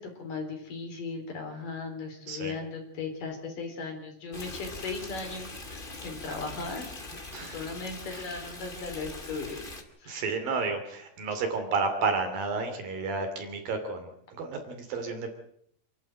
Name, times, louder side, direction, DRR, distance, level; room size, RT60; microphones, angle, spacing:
voice 1, 0.0-6.9 7.4-9.6 10.0-10.3, left 4 dB, 55° left, 4 dB, 5.4 m, -37 dB
Stream, 4.3-9.8, left 2 dB, 20° left, 1.6 m, -42 dB
voice 2, 10.1-15.3, right 4 dB, 60° right, 6 dB, 4.4 m, -31 dB
28.0 x 12.0 x 9.1 m, 0.71 s
omnidirectional pair, 4.7 m